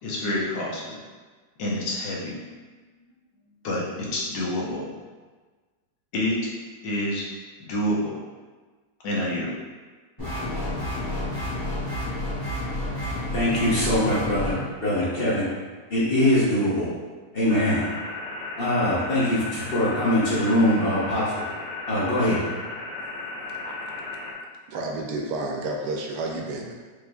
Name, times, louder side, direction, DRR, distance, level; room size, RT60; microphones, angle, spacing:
voice 1, 0.0-1.0 1.6-2.4 3.6-4.9 6.1-6.5 6.8-7.2 7.6-8.2 9.0-9.5, left 1 dB, 85° left, -4 dB, 1.5 m, -27 dB
sound 1, 10.2-14.6, left 1 dB, 15° left, 1.0 m, -30 dB
voice 2, 13.3-15.5 15.9-16.9 17.3-17.9 18.6-21.3 21.9-22.4, left 1 dB, 50° left, -8 dB, 0.7 m, -22 dB
sound 2, 17.5-24.3, left 3 dB, 65° left, 1.2 m, -35 dB
voice 3, 24.7-26.7, right 2 dB, 75° right, 0 dB, 1.1 m, -30 dB
4.8 x 3.0 x 2.3 m, 1.4 s
omnidirectional pair, 1.9 m